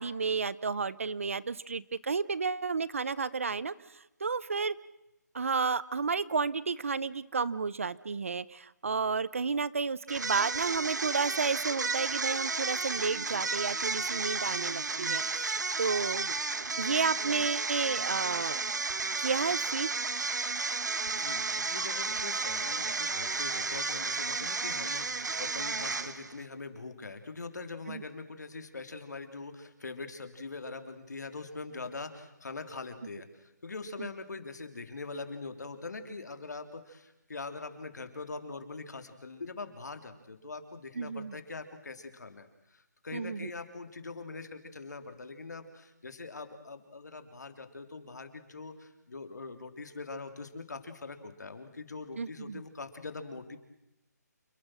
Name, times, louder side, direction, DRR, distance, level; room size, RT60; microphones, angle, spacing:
voice 1, 0.0-3.7 4.2-4.8 5.3-16.4 16.8-18.6 19.2-19.9 27.9-28.0 34.0-34.1 41.0-41.4 43.1-43.5 52.2-52.6, right 5 dB, 50° right, 20 dB, 0.8 m, -32 dB
sound 1, 10.1-26.4, right 4 dB, 75° right, 1.7 m, -33 dB
voice 2, 21.1-53.6, left 3 dB, 70° left, 7 dB, 3.4 m, -43 dB
28.5 x 21.5 x 6.3 m, 0.90 s
hypercardioid pair, 175°, 10 cm